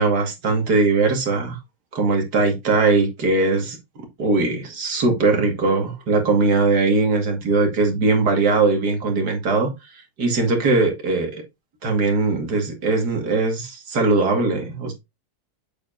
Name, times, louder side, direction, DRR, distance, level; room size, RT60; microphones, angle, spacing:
voice 1, 0.0-1.6 1.9-11.4 11.8-14.9, right 3 dB, 85° right, 2.4 m, -20 dB
8.1 x 6.8 x 2.6 m
omnidirectional pair, 1.7 m